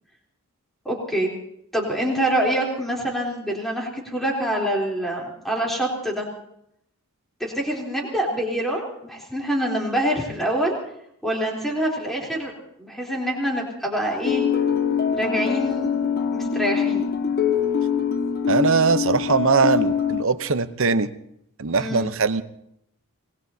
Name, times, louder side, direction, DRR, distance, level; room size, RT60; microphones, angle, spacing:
voice 1, 0.8-1.3 1.7-6.3 7.4-10.8 11.2-12.5 12.8-14.4 15.1-15.9 16.3-17.1 21.8-22.0, right 1 dB, ahead, -2 dB, 3.5 m, -25 dB
sound 1, 14.2-20.2, left 7 dB, 45° left, 1.0 m, -23 dB
voice 2, 18.5-21.1 21.6-22.4, right 4 dB, 60° right, 12 dB, 0.8 m, -21 dB
26.0 x 19.5 x 2.8 m, 0.75 s
head